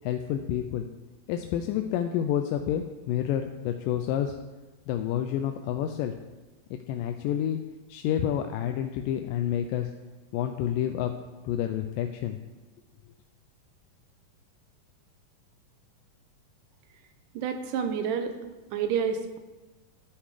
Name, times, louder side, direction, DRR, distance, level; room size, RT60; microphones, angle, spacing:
voice 1, 0.0-0.9 1.3-4.4 4.9-6.1 6.9-7.6 7.9-9.9 10.3-11.1 11.4-12.4, left 10 dB, 80° left, 6 dB, 2.2 m, -29 dB
voice 2, 17.3-18.3 18.7-19.4, right 7 dB, 75° right, 7 dB, 2.4 m, -29 dB
11.5 x 8.7 x 4.9 m, 1.2 s
omnidirectional pair, 4.0 m